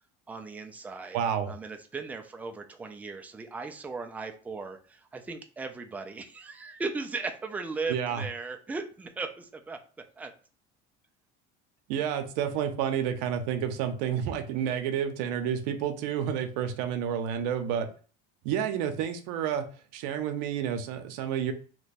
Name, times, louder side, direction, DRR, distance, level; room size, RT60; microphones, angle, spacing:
voice 1, 0.3-1.2 1.5-9.8 10.2-10.3, right 4 dB, 5° right, 5 dB, 0.3 m, -37 dB
voice 2, 1.1-1.5 7.9-8.2 11.9-17.9 18.4-19.7 19.9-21.5, right 8 dB, 80° right, 7 dB, 0.6 m, -30 dB
3.0 x 2.2 x 4.0 m, 0.39 s
cardioid pair, 130°, 21 cm